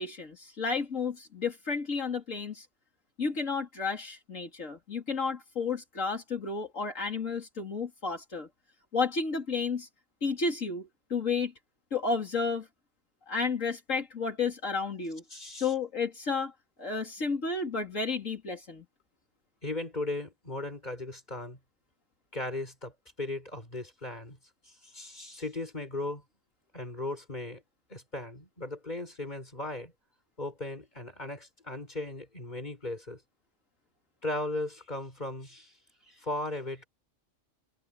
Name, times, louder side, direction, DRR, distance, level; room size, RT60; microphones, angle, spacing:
voice 1, 0.0-2.7 3.2-8.5 8.9-9.9 10.2-11.5 11.9-12.7 13.3-15.2 15.6-16.5 16.8-18.8, left 4 dB, 75° left, 3.4 m, -32 dB
voice 2, 15.3-15.7 19.6-21.6 22.3-22.9 23.2-24.4 24.7-26.2 26.7-27.6 27.9-29.9 30.4-33.2 34.2-35.7 36.1-36.8, left 2 dB, 35° left, 5.7 m, -37 dB
omnidirectional pair, 1.4 m